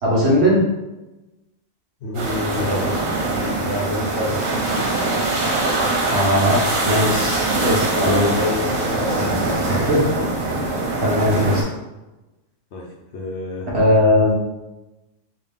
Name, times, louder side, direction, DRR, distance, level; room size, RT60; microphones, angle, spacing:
voice 1, 0.0-0.6 6.1-8.3 9.7-10.0 11.0-11.6 13.7-14.3, equal, 55° right, -5 dB, 1.2 m, -18 dB
voice 2, 2.0-3.2 3.6-4.5 7.9-9.7 12.7-13.7, left 2 dB, 65° left, -1 dB, 0.8 m, -28 dB
sound 1, 2.1-11.6, right 2 dB, 80° right, 1.3 m, -22 dB
3.7 x 2.4 x 3.4 m, 1.0 s
omnidirectional pair, 1.4 m